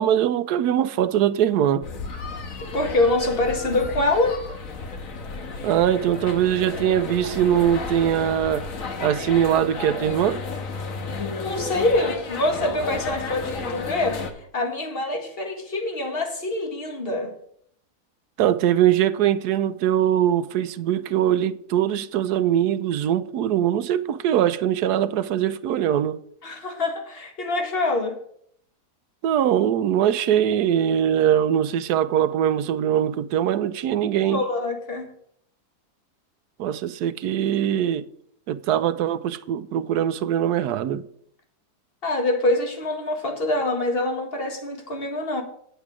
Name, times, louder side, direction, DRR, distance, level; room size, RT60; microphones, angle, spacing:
voice 1, 0.0-1.8 5.6-8.7 9.0-10.4 18.4-26.2 29.2-34.4 36.6-38.1 38.5-41.0, right 10 dB, 80° right, 1.2 m, -22 dB
sound 1, 1.8-14.3, left 4 dB, 60° left, 1.5 m, -33 dB
voice 2, 2.6-4.5 11.4-17.3 26.4-28.2 34.3-35.1 42.0-45.4, left 2 dB, 35° left, 1.8 m, -25 dB
9.1 x 8.2 x 4.9 m
omnidirectional pair, 1.7 m